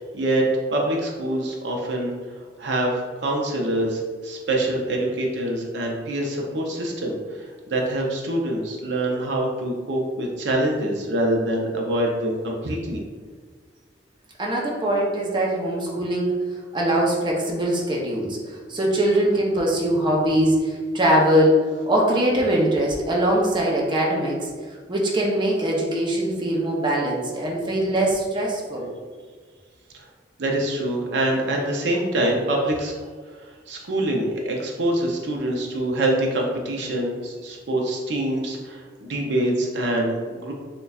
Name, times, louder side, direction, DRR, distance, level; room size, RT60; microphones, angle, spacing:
voice 1, 0.1-2.1 2.6-13.0 30.4-32.9 33.7-40.5, right 1 dB, 65° right, -1 dB, 0.6 m, -25 dB
voice 2, 14.4-21.6 21.9-28.9, right 1 dB, 25° right, -3 dB, 0.7 m, -22 dB
6.6 x 2.2 x 2.3 m, 1.5 s
head